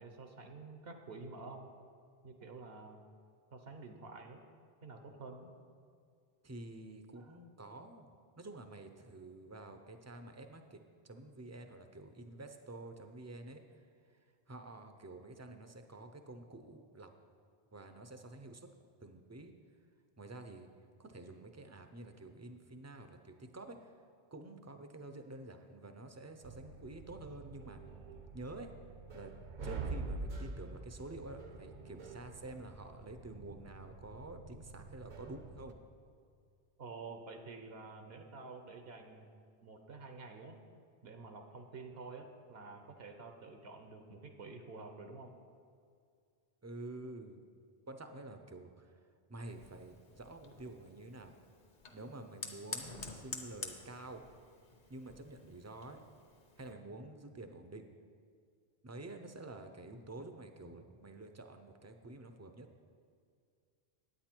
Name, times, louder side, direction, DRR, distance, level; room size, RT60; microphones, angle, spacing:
voice 1, 0.0-1.7 2.2-3.0 3.5-4.4 4.8-5.5 7.1-7.4 36.8-39.3 39.6-40.6 41.0-45.3, right 3 dB, 75° right, 5 dB, 1.1 m, -49 dB
voice 2, 6.4-10.8 11.0-13.6 14.5-17.1 17.7-18.7 19.0-19.5 20.2-20.7 21.0-23.9 24.3-27.8 28.3-28.7 29.1-29.3 29.6-35.8 46.6-47.4 47.9-49.0 49.3-51.3 51.9-54.2 54.9-56.0 56.6-57.9 58.8-62.7, right 2 dB, 20° right, 7 dB, 0.4 m, -49 dB
sound 1, 26.4-35.7, right 3 dB, 55° right, 0.7 m, -46 dB
Fire, 49.5-56.7, left 4 dB, 50° left, 1.0 m, -49 dB
9.9 x 9.0 x 4.4 m, 2.2 s
omnidirectional pair, 1.0 m